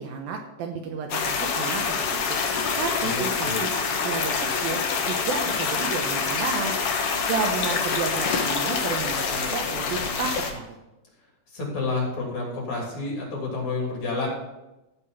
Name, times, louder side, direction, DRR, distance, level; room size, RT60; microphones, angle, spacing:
voice 1, 0.0-2.4 2.8-3.8 4.0-6.7 7.3-10.8, right 5 dB, 75° right, 3 dB, 2.4 m, -32 dB
sound 1, 1.1-10.5, left 5 dB, 90° left, 1.3 m, -26 dB
voice 2, 3.0-3.6 11.5-14.3, left 3 dB, 45° left, -2 dB, 3.9 m, -29 dB
15.5 x 5.4 x 5.7 m, 0.97 s
omnidirectional pair, 4.7 m